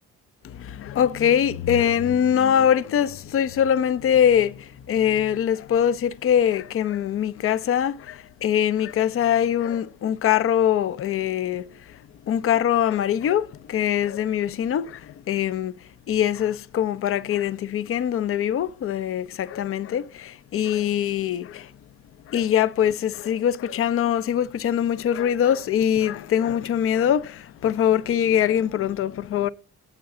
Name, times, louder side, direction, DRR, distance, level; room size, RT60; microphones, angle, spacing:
voice 1, 0.4-11.7 12.3-15.7 16.1-21.7 22.3-29.5, left 9 dB, 45° left, 0.5 m, -23 dB
7.8 x 5.9 x 6.6 m
cardioid pair, 90°, 30 cm